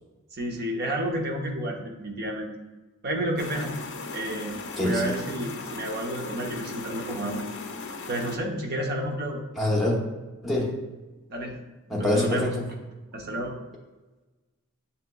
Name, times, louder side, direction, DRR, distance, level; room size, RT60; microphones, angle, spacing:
voice 1, 0.3-2.5 3.0-3.7 4.1-7.5 8.1-9.4 11.3-11.6 12.0-12.5 13.1-13.5, right 1 dB, 45° right, 0 dB, 0.8 m, -30 dB
sound 1, 3.4-8.4, left 4 dB, 55° left, 0.4 m, -37 dB
voice 2, 4.8-5.2 9.6-10.0 10.4-10.8 11.9-12.6, left 1 dB, ahead, -4 dB, 0.8 m, -25 dB
7.4 x 2.8 x 2.2 m, 1.2 s
head